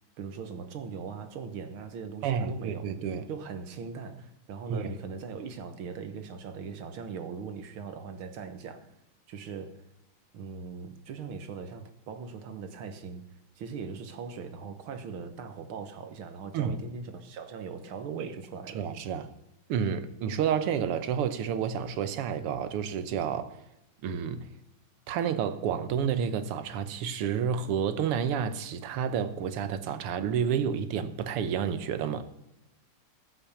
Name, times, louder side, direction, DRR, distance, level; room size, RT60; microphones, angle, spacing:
voice 1, 0.2-2.9 3.3-8.9 9.3-9.8 10.3-13.2 13.6-18.9, right 5 dB, 70° right, 2.0 m, -40 dB
voice 2, 2.2-3.3 4.7-4.9 16.5-16.8 18.7-19.3 19.7-23.6 24.0-24.5 25.1-32.2, right 7 dB, 90° right, 1.9 m, -30 dB
14.0 x 6.3 x 6.9 m
omnidirectional pair, 2.4 m